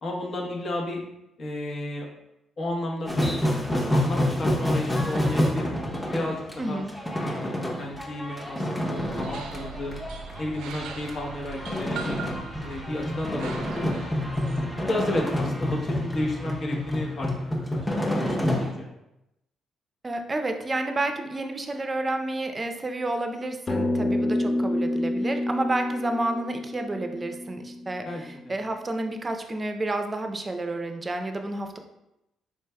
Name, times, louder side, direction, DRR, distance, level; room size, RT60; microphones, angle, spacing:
voice 1, 0.0-1.0 1.4-2.1 2.6-3.4 3.7-5.8 6.1-6.8 7.2-10.0 10.4-12.2 12.6-13.9 14.6-17.3 17.7-18.9 28.1-28.5, left 1 dB, 50° left, -1 dB, 1.0 m, -32 dB
sound 1, 3.1-18.7, left 1 dB, 10° left, 0.8 m, -28 dB
voice 2, 6.6-6.9 20.0-31.8, right 2 dB, 25° right, 6 dB, 0.5 m, -30 dB
sound 2, 8.9-14.6, right 5 dB, 85° right, 0.3 m, -40 dB
sound 3, 23.7-28.3, left 1 dB, 35° left, 0.4 m, -28 dB
4.6 x 3.2 x 2.2 m, 0.88 s
cardioid pair, 90°, 0 cm